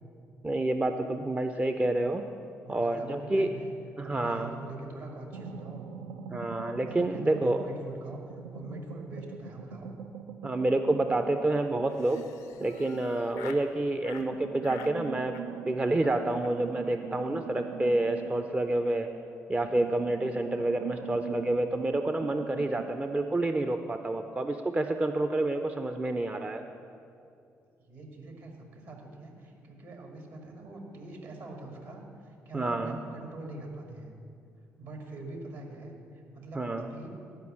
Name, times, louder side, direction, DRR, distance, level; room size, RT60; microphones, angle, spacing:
voice 1, 0.4-2.3 2.7-3.6 4.0-4.5 6.3-7.7 10.4-12.2 12.6-15.4 15.6-19.1 19.5-26.6 32.5-33.0 36.5-36.9, right 2 dB, 20° right, 7 dB, 0.5 m, -28 dB
voice 2, 2.6-3.7 4.0-5.9 6.8-8.2 8.5-9.9 26.0-26.1 27.8-34.1 34.8-36.0 36.3-37.1, right 2 dB, 60° right, 1 dB, 2.0 m, -43 dB
sound 1, 5.3-7.8 8.1-13.7 14.2-19.2 19.6-22.9, right 7 dB, 75° right, 0.4 m, -43 dB
Laughter, 11.9-13.7 14.0-14.3 14.6-15.0 15.3-15.7 16.0-16.2 16.4-16.5 16.8-16.9 17.2-17.3 17.6-17.9, left 8 dB, 75° left, 0.5 m, -49 dB
10.5 x 5.4 x 7.6 m, 2.5 s
figure-of-eight pair, 40°, 7 cm